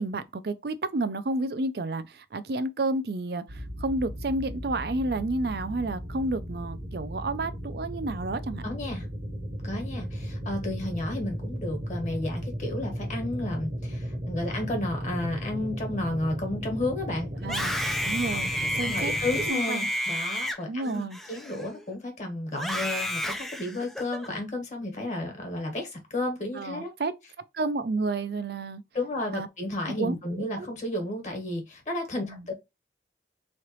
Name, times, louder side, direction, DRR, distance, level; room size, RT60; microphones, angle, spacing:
voice 1, 0.0-8.6 17.4-17.8 18.0-19.9 20.7-21.2 26.5-27.1 27.5-28.8 29.3-29.5 30.0-30.7 32.2-32.5, right 2 dB, 60° right, 0.5 m, -31 dB
sound 1, 3.5-19.5, equal, 40° right, 0.9 m, -35 dB
voice 2, 8.6-9.1 9.6-17.5 17.9-18.1 18.8-21.0 21.3-26.9 28.9-32.5, left 1 dB, 40° left, 1.4 m, -32 dB
Screaming, 17.4-21.9 22.5-24.3, left 1 dB, ahead, 0.4 m, -31 dB
3.8 x 3.2 x 3.0 m
head